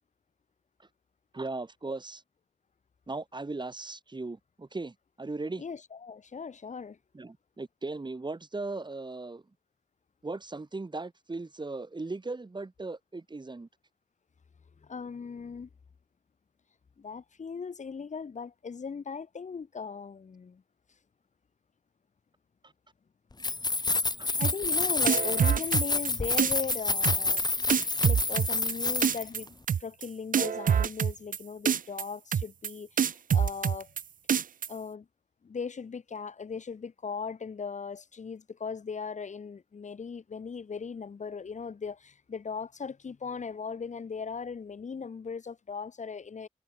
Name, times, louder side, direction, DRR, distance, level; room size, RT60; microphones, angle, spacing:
voice 1, 1.3-2.2 3.1-5.6 7.1-9.4 10.2-13.7 22.6-22.7 24.2-24.3, right 3 dB, 35° right, 7.3 m, -38 dB
voice 2, 5.6-7.0 14.8-15.7 17.0-20.6 24.3-27.4 28.0-33.9 34.7-35.1 35.4-46.5, left 5 dB, 65° left, 1.8 m, -38 dB
Keys jangling, 23.3-29.4, left 3 dB, 30° left, 1.4 m, -28 dB
sound 1, 24.4-24.8 25.1-26.1 26.4-26.8 27.0-27.4 27.7-28.7 29.0-29.4 29.7-30.1 30.3-31.4 31.7-32.0 32.3-32.7 33.0-34.0 34.3-34.7, right 8 dB, 90° right, 0.8 m, -25 dB
wide cardioid pair, 90°, 14 cm